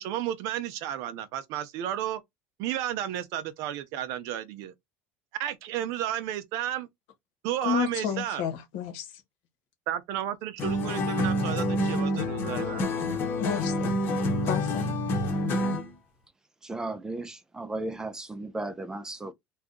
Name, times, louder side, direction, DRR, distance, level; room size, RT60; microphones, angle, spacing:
voice 1, 0.0-2.2 2.6-4.7 5.4-6.9 7.4-8.5 9.9-12.8, right 11 dB, 60° right, 0.6 m, -32 dB
voice 2, 7.6-9.0 13.4-13.9 14.4-14.9, left 6 dB, 75° left, 1.1 m, -30 dB
sound 1, 10.6-15.9, left 1 dB, 35° left, 0.9 m, -27 dB
voice 3, 16.6-19.3, right 2 dB, 10° right, 0.4 m, -35 dB
2.7 x 2.4 x 3.7 m
cardioid pair, 155°, 6 cm